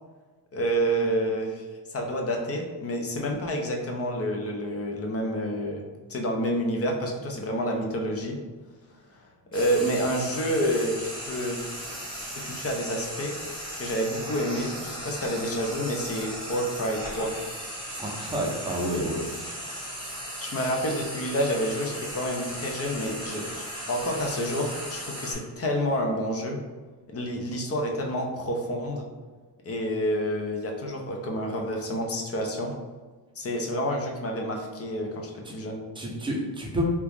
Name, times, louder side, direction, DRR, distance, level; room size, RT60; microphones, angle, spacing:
voice 1, 0.5-8.4 9.5-11.6 12.3-13.3 13.7-17.3 20.4-26.6 27.1-29.1 29.6-32.8 33.4-35.8, equal, 35° left, 1 dB, 0.5 m, -29 dB
Frying (food), 9.5-25.3, equal, 10° left, 0.9 m, -37 dB
voice 2, 18.0-19.6 35.5-35.6 36.0-36.8, right 1 dB, 10° right, -2 dB, 0.6 m, -30 dB
2.9 x 2.4 x 3.4 m, 1.4 s
cardioid pair, 125°, 45 cm